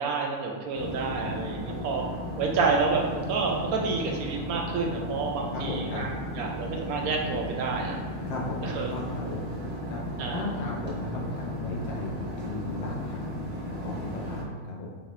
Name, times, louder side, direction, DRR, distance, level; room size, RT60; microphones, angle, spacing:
voice 1, 0.0-2.0 2.4-6.1 6.4-8.0 8.6-8.9 10.2-10.5, right 4 dB, 75° right, 0 dB, 1.0 m, -29 dB
sound 1, 0.7-14.4, equal, 25° right, 0.8 m, -35 dB
voice 2, 5.5-6.0 8.3-8.6 8.9-9.4 9.9-10.0 10.3-13.4 13.8-15.0, left 2 dB, 65° left, -3 dB, 0.3 m, -36 dB
3.8 x 2.4 x 4.2 m, 1.5 s
omnidirectional pair, 1.6 m